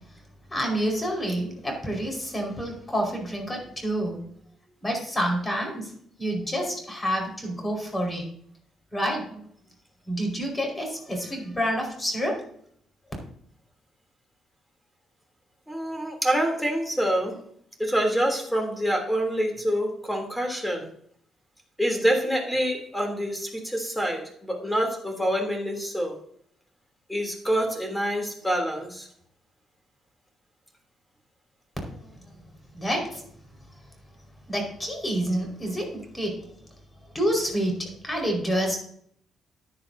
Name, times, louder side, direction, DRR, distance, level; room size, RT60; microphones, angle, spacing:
voice 1, 0.5-4.2 4.8-5.9 6.2-8.2 8.9-9.5 10.1-12.3 31.9-32.4 32.7-33.2 34.5-36.5 37.1-38.8, equal, 20° left, 2 dB, 4.8 m, -28 dB
voice 2, 15.7-17.4 17.8-20.9 21.8-26.2 27.1-29.1, equal, 5° left, 3 dB, 3.1 m, -26 dB
14.5 x 9.7 x 2.7 m, 0.66 s
cardioid pair, 90°, 0 cm